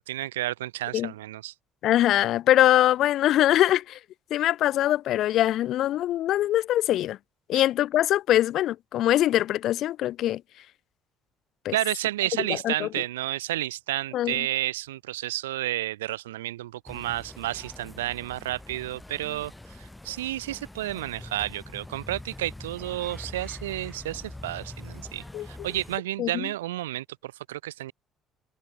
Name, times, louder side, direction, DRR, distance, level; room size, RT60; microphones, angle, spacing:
voice 1, 0.0-1.5 7.5-7.6 11.7-27.9, right 15 dB, 85° right, 3.0 m, -31 dB
voice 2, 1.8-4.0 4.3-7.2 7.5-10.4 11.6-11.7 12.6-12.9 14.1-14.4 25.3-25.5 26.2-26.3, left 13 dB, 60° left, 0.3 m, -22 dB
sound 1, 16.9-26.0, left 1 dB, 10° left, 5.0 m, -43 dB
hypercardioid pair, 55°, 0 cm